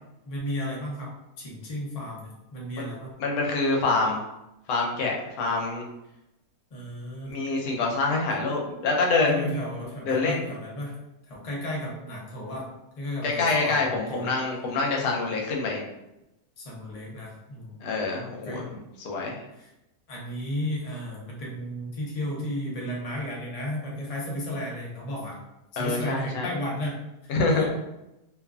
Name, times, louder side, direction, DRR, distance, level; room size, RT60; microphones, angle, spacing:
voice 1, 0.3-1.1 1.4-3.1 6.7-7.3 9.2-10.9 11.3-12.7 13.0-14.3 16.6-17.8 18.4-18.6 19.5-19.7 20.1-25.4 25.7-27.0 27.5-27.7, left 1 dB, 70° left, -4 dB, 0.3 m, -33 dB
voice 2, 3.2-4.2 4.7-5.9 7.3-9.5 10.1-10.4 13.2-15.8 17.8-18.7 19.0-19.4 25.8-26.5 27.3-27.7, left 3 dB, 90° left, -1 dB, 1.2 m, -26 dB
2.8 x 2.4 x 2.3 m, 0.93 s
omnidirectional pair, 1.8 m